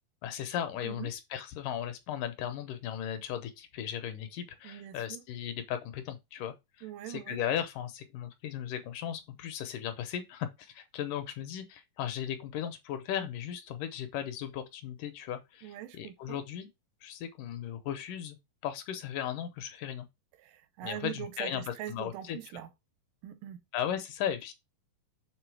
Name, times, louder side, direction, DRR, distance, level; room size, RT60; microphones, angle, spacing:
voice 1, 0.2-16.7 17.0-18.4 18.6-20.1 20.8-22.4 23.7-24.5, left 10 dB, 75° left, 2.2 m, -36 dB
voice 2, 4.6-5.2 6.8-7.4 15.6-16.4 20.4-22.7 23.2-23.6, right 12 dB, 80° right, 2.3 m, -42 dB
6.9 x 3.6 x 4.6 m
omnidirectional pair, 4.0 m